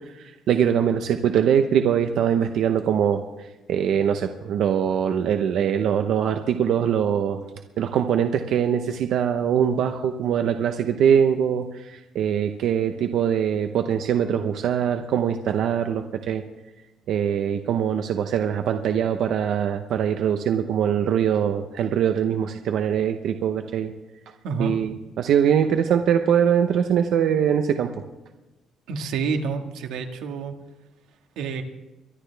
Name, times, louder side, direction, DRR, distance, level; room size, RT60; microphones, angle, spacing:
voice 1, 0.1-3.2 3.7-7.4 7.8-16.4 17.1-23.9 24.6-27.9, right 8 dB, 55° right, 6 dB, 0.8 m, -22 dB
voice 2, 28.9-30.5 31.4-31.6, right 5 dB, 85° right, 4 dB, 1.7 m, -28 dB
23.5 x 11.5 x 3.4 m, 1.1 s
cardioid pair, 175°, 0 cm